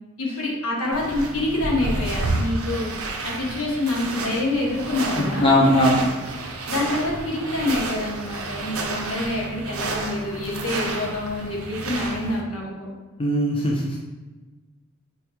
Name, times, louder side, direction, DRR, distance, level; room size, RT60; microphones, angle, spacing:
voice 1, 0.2-2.9 3.2-5.6 6.7-12.9, left 2 dB, 75° left, -3 dB, 0.9 m, -26 dB
sound 1, 0.9-12.4, right 2 dB, 75° right, 0.5 m, -30 dB
voice 2, 5.2-6.1 13.2-14.0, equal, 25° left, -3 dB, 0.5 m, -19 dB
4.5 x 2.9 x 2.2 m, 1.3 s
head